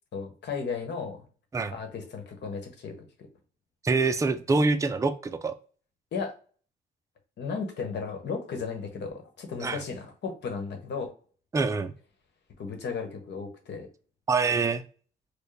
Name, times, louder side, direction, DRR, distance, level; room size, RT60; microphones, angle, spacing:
voice 1, 0.1-1.2 1.7-2.9 6.1-6.3 7.4-11.1 12.6-13.9, left 5 dB, 60° left, 4 dB, 1.2 m, -35 dB
voice 2, 3.8-5.5 9.6-9.8 11.5-11.9 14.3-14.8, right 3 dB, 15° right, 9 dB, 0.4 m, -25 dB
4.5 x 2.2 x 3.2 m, 0.41 s
cardioid pair, 90°, 20 cm